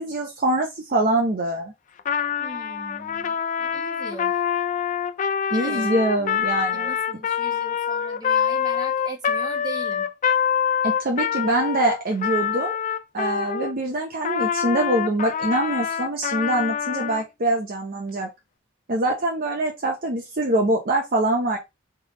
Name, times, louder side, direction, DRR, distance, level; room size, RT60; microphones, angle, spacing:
voice 1, 0.0-1.7 5.5-6.9 10.8-12.8 13.1-18.3 18.9-21.6, right 1 dB, 45° right, 0.8 m, -24 dB
Trumpet, 2.0-13.7 14.2-17.2, left 8 dB, 40° left, 0.3 m, -25 dB
voice 2, 2.4-4.4 5.5-6.4 6.7-10.1, right 2 dB, 20° right, 1.4 m, -39 dB
3.4 x 3.4 x 3.8 m
head